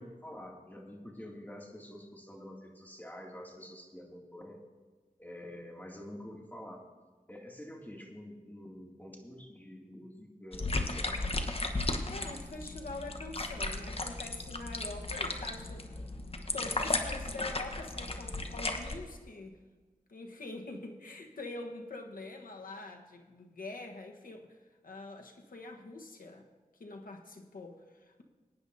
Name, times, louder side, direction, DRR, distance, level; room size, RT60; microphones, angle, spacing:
voice 1, 0.0-4.6 5.2-6.9 7.3-11.1, left 1 dB, 10° left, -1 dB, 2.4 m, -47 dB
sound 1, 10.5-19.0, left 2 dB, 40° left, 1.1 m, -35 dB
voice 2, 12.1-16.0 16.5-19.6 20.1-24.6 24.8-26.5 26.8-28.2, left 2 dB, 75° left, 3 dB, 1.3 m, -45 dB
22.0 x 9.9 x 2.7 m, 1.3 s
wide cardioid pair, 55°, 15 cm